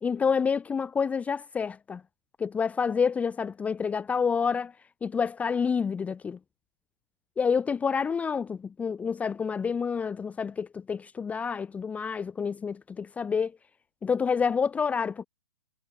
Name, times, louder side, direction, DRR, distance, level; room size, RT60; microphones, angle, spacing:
voice 1, 0.0-2.0 2.4-6.4 7.4-13.5 14.0-15.3, left 6 dB, 10° left, 0.9 m, -28 dB
hypercardioid pair, 130°, 13 cm